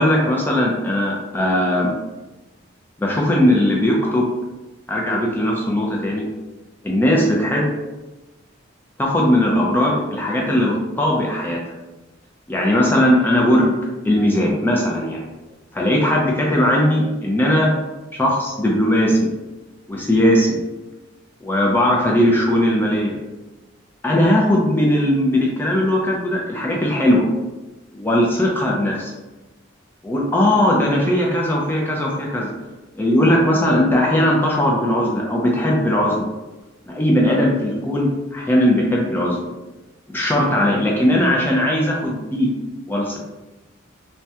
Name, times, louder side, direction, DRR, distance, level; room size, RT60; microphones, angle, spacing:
voice 1, 0.0-1.9 3.0-4.3 4.9-6.3 6.8-7.7 9.0-11.6 12.5-13.8 14.0-15.2 15.7-17.7 18.2-19.3 19.9-20.6 21.4-23.2 24.0-27.2 27.9-29.1 30.0-32.5 33.0-36.3 36.9-39.4 40.1-42.5 42.9-43.2, left 1 dB, 10° left, -3 dB, 0.3 m, -18 dB
2.7 x 2.1 x 3.3 m, 1.1 s
head